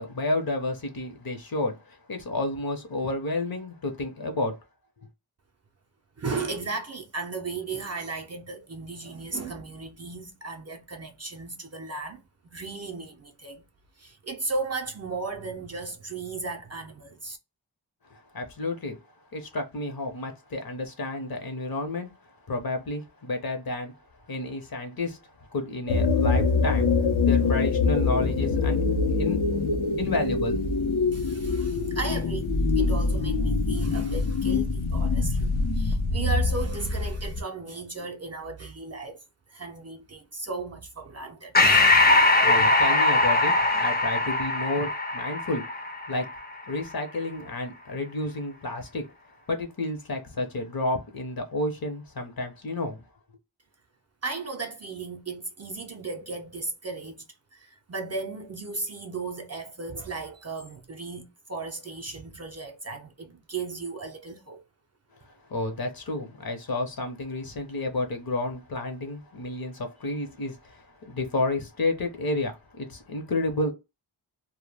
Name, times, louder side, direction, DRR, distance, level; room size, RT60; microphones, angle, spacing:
voice 1, 0.0-4.5 18.1-19.0 19.3-22.1 22.5-23.9 24.3-25.2 25.5-26.9 27.2-28.8 29.1-29.4 30.0-30.6 42.4-45.6 46.1-46.3 46.7-49.0 49.5-53.0 65.5-73.7, left 2 dB, 50° left, 0.7 m, -30 dB
voice 2, 6.2-12.2 12.5-13.6 14.0-17.4 31.1-39.2 39.5-41.9 54.2-57.2 57.5-64.6, right 3 dB, 35° right, 0.4 m, -35 dB
sound 1, 25.9-37.4, left 4 dB, 85° left, 0.7 m, -24 dB
Breathing, 41.5-46.4, left 2 dB, 20° left, 0.5 m, -21 dB
2.1 x 2.1 x 3.3 m
wide cardioid pair, 55°, 46 cm